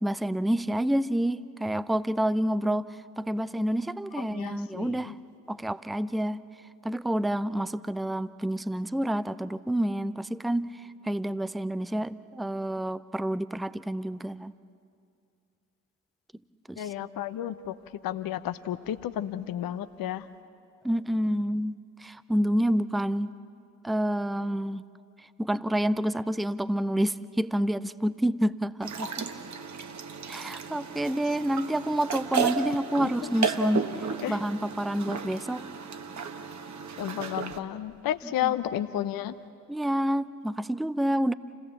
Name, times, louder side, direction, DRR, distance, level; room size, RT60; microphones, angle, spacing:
voice 1, 0.0-2.9 3.2-5.1 5.5-6.4 6.8-10.7 11.0-14.5 16.7-16.9 20.8-23.3 23.8-24.8 25.4-29.2 30.3-33.9 34.3-35.6 38.2-38.5 39.7-41.3, right 1 dB, ahead, 16 dB, 0.5 m, -28 dB
voice 2, 4.3-5.1 16.8-17.7 18.0-20.3 34.2-34.4 37.0-39.3, left 11 dB, 45° left, 12 dB, 0.9 m, -32 dB
sound 1, 28.8-37.6, right 6 dB, 35° right, 1.4 m, -34 dB
28.0 x 16.5 x 7.3 m, 2.4 s
figure-of-eight pair, 45°, 47 cm